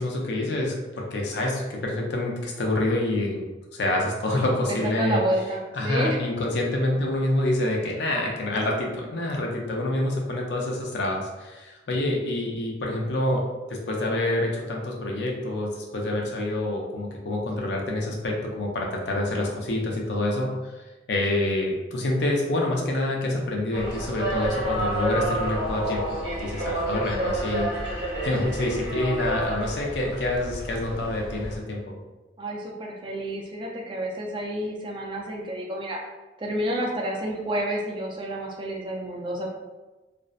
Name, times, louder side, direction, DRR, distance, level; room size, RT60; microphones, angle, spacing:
voice 1, 0.0-3.4 3.7-5.2 5.7-13.4 13.7-20.7 21.1-27.7 28.2-32.0, left 1 dB, 65° left, 0 dB, 0.5 m, -27 dB
voice 2, 4.7-6.2 32.4-36.0 36.4-39.5, right 1 dB, 25° right, -1 dB, 0.3 m, -29 dB
sound 1, 23.7-31.6, right 1 dB, 75° right, 0.9 m, -29 dB
2.5 x 2.0 x 2.4 m, 1.1 s
head